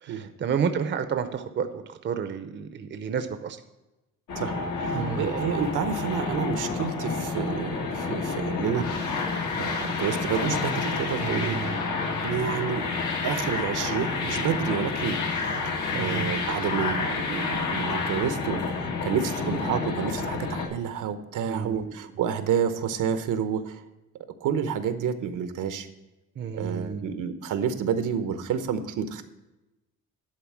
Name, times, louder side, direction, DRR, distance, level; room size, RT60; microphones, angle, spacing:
voice 1, 0.0-3.6 4.9-5.3 11.2-11.8 15.9-16.3 21.4-21.9 26.4-27.1, right 7 dB, 35° right, 9 dB, 0.6 m, -31 dB
sound 1, 4.3-20.7, left 4 dB, 75° left, 1.6 m, -29 dB
voice 2, 4.4-9.3 9.6-11.6 12.2-12.9 13.2-23.8 24.4-25.9 26.5-29.2, right 7 dB, 80° right, 10 dB, 0.9 m, -29 dB
11.0 x 4.1 x 7.3 m, 1.0 s
cardioid pair, 135°, 31 cm